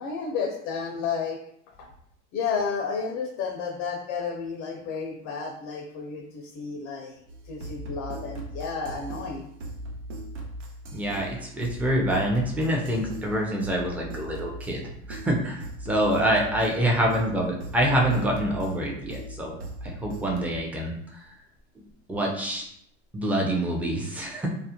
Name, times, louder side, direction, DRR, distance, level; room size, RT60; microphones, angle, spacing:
voice 1, 0.0-1.4 1.8-1.9 2.3-9.5, left 5 dB, 55° left, 3 dB, 0.5 m, -32 dB
sound 1, 7.3-20.6, right 1 dB, 85° right, 0.6 m, -39 dB
voice 2, 10.9-14.8 15.1-19.6 19.8-21.3 22.1-22.7 23.1-24.5, right 1 dB, 5° right, -1 dB, 0.5 m, -26 dB
2.3 x 2.0 x 2.8 m, 0.72 s
hypercardioid pair, 85°, 35 cm